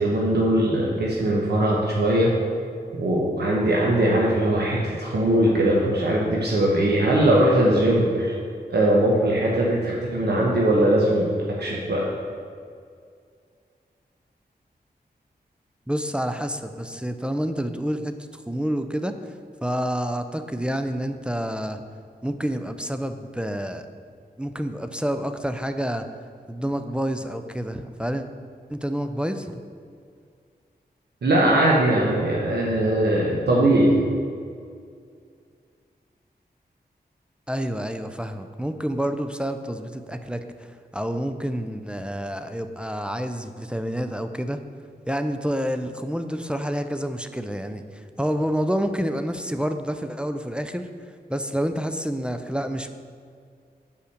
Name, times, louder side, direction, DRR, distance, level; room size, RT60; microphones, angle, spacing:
voice 1, 0.0-2.3 3.0-8.3 8.7-11.3 11.6-12.1 31.2-34.0, right 1 dB, 75° right, -3 dB, 1.0 m, -20 dB
voice 2, 15.9-19.3 19.6-21.8 22.2-23.9 24.4-26.1 26.5-28.3 28.7-29.6 37.5-44.6 45.1-50.9 51.3-52.9, equal, 5° right, 7 dB, 0.4 m, -28 dB
5.5 x 5.0 x 6.5 m, 2.2 s
cardioid pair, 55°, 17 cm